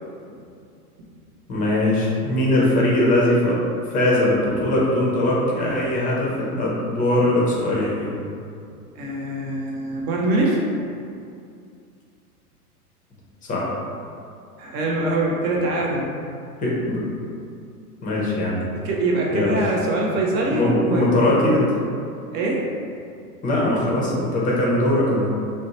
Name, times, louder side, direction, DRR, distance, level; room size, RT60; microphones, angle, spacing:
voice 1, 1.5-3.6 3.9-8.1 13.4-13.7 16.6-17.0 18.0-18.6 19.3-19.6 20.5-21.7 23.4-25.3, left 1 dB, 20° left, -4 dB, 0.6 m, -21 dB
voice 2, 9.0-10.6 14.6-16.1 18.8-21.0 22.3-22.6, right 2 dB, 25° right, -3 dB, 0.3 m, -23 dB
2.6 x 2.1 x 4.0 m, 2.4 s
hypercardioid pair, 115°, 46 cm